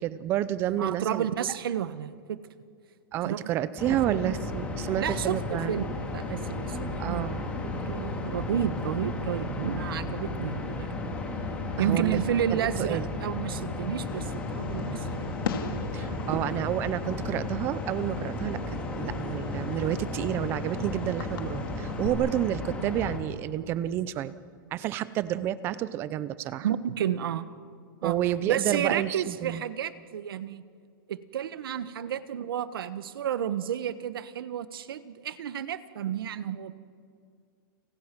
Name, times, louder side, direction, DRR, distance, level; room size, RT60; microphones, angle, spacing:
voice 1, 0.0-1.3 3.1-5.7 7.0-7.4 11.8-12.2 12.8-13.1 15.9-24.3 24.7-26.7 28.0-29.6, right 12 dB, 20° right, 16 dB, 0.6 m, -30 dB
voice 2, 0.8-2.4 3.2-3.4 3.9-4.3 5.0-5.4 5.7-7.3 7.8-10.9 11.8-15.3 26.6-27.5 28.0-28.2 28.5-30.6 31.1-36.7, right 9 dB, 80° right, 13 dB, 1.4 m, -31 dB
sound 1, 3.8-23.2, left 2 dB, 10° left, 2.5 m, -34 dB
Fireworks, 14.1-22.1, left 7 dB, 75° left, 2.6 m, -41 dB
30.0 x 27.5 x 6.1 m, 2.2 s
supercardioid pair, 175°, 12 cm